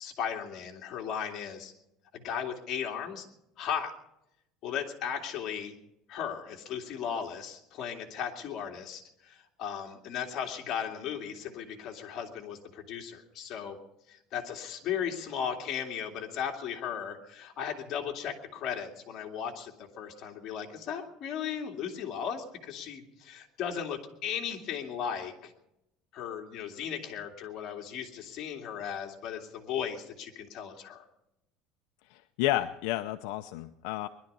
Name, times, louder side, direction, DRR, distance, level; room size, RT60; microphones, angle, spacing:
voice 1, 0.0-1.7 2.1-3.3 3.6-3.9 4.6-5.7 6.1-13.8 14.1-25.5 26.1-31.0, left 8 dB, 40° left, 1 dB, 2.4 m, -36 dB
voice 2, 32.1-34.1, left 15 dB, 75° left, 8 dB, 0.6 m, -31 dB
21.0 x 12.0 x 5.4 m, 0.85 s
cardioid pair, 155°, 0 cm